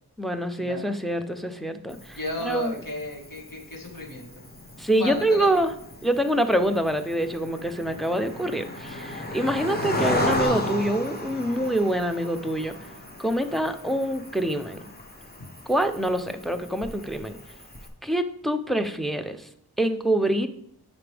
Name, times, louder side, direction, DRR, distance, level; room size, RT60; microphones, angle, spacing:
voice 1, 0.2-2.8 4.8-5.7 6.0-12.8 13.2-14.8 15.7-17.4 18.0-19.4 19.8-20.5, right 1 dB, ahead, 7 dB, 0.6 m, -25 dB
Cricket, 1.9-17.9, left 1 dB, 25° left, 1.2 m, -34 dB
voice 2, 2.2-4.3 5.0-5.5, left 1 dB, 60° left, 0 dB, 1.8 m, -33 dB
9.5 x 5.1 x 3.4 m, 0.68 s
wide cardioid pair, 45°, 38 cm